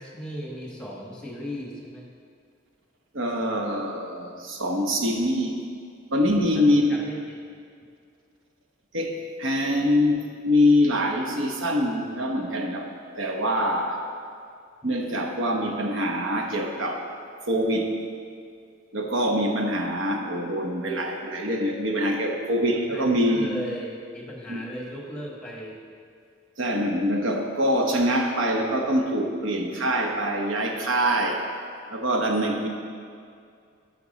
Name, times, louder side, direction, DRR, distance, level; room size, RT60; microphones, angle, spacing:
voice 1, 0.0-2.0 6.5-7.3 14.8-14.9 22.9-25.8, equal, 5° left, -2 dB, 1.3 m, -37 dB
voice 2, 3.1-5.6 6.1-7.0 8.9-12.9 13.2-14.0 14.8-17.0 17.5-18.0 18.9-23.5 24.5-24.6 26.6-31.4 31.9-32.7, equal, 70° right, 2 dB, 1.0 m, -24 dB
10.5 x 5.9 x 4.1 m, 2.3 s
head